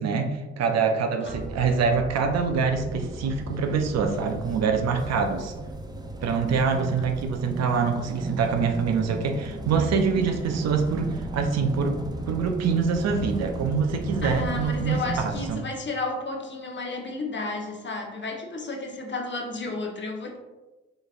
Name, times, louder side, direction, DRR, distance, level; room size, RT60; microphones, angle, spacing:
voice 1, 0.0-5.5 6.2-12.0 12.3-15.6, right 5 dB, 60° right, 5 dB, 0.6 m, -25 dB
sound 1, 1.3-15.6, right 2 dB, 15° right, 0.6 m, -35 dB
voice 2, 14.2-20.4, left 3 dB, 40° left, 1 dB, 1.0 m, -32 dB
5.1 x 3.1 x 2.5 m, 1.1 s
hypercardioid pair, 40°, 30 cm